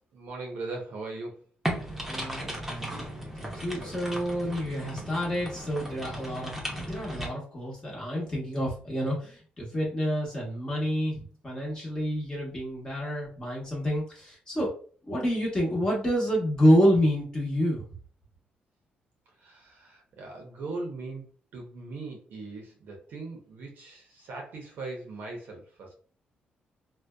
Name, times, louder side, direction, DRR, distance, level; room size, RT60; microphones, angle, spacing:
voice 1, 0.1-1.4 3.7-4.0 19.4-25.9, right 3 dB, 70° right, 1 dB, 0.7 m, -40 dB
sound 1, 1.6-7.3, right 1 dB, 10° right, 0.7 m, -36 dB
voice 2, 2.1-3.1 3.4-14.7 15.0-17.9, equal, 25° left, -4 dB, 0.9 m, -28 dB
2.6 x 2.1 x 2.2 m, 0.42 s
cardioid pair, 110°, 3 cm